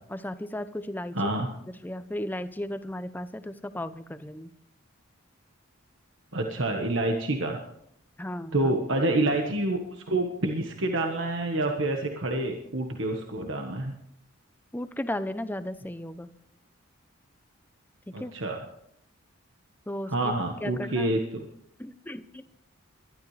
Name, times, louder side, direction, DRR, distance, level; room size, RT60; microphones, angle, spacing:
voice 1, 0.1-1.3 1.7-4.5 8.2-8.7 14.7-16.3 18.2-18.3 19.9-20.3 20.6-21.1 21.8-22.5, left 1 dB, 10° left, 11 dB, 0.6 m, -35 dB
voice 2, 1.1-1.5 6.3-7.6 8.5-13.9 18.1-18.7 20.1-21.5, right 2 dB, 70° right, 3 dB, 1.4 m, -28 dB
22.0 x 12.5 x 3.3 m, 0.71 s
head